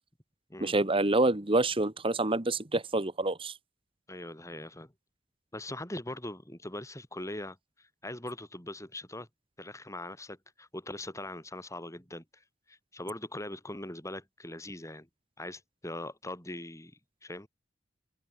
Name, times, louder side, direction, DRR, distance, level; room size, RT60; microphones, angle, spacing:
voice 1, 0.6-3.5, right 2 dB, 30° right, 1.6 m, -27 dB
voice 2, 4.1-4.9 5.5-9.3 9.6-12.4 12.7-15.1 15.4-17.5, left 1 dB, 15° left, 7.4 m, -41 dB
open air
head